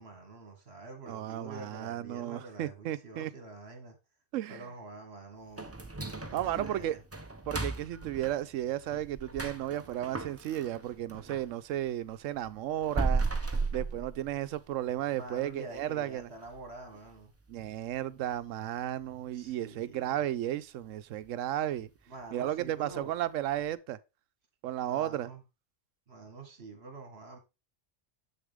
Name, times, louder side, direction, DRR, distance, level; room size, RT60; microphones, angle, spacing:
voice 1, 0.0-4.0 4.5-5.7 6.2-7.0 13.6-13.7 15.1-17.3 19.3-20.2 22.1-23.2 24.8-25.4 26.1-27.4, right 3 dB, 55° right, 2.1 m, -47 dB
voice 2, 1.1-3.3 4.3-4.6 6.3-7.0 7.5-16.3 17.5-21.9 22.3-24.0 24.6-25.3, right 12 dB, 85° right, 1.0 m, -34 dB
sound 1, 5.6-11.5 11.9-14.7 15.1-15.2 15.7-15.8 16.3-16.6 16.9-17.0 17.6-17.7, right 3 dB, 15° right, 0.6 m, -36 dB
7.3 x 6.7 x 3.5 m
omnidirectional pair, 1.3 m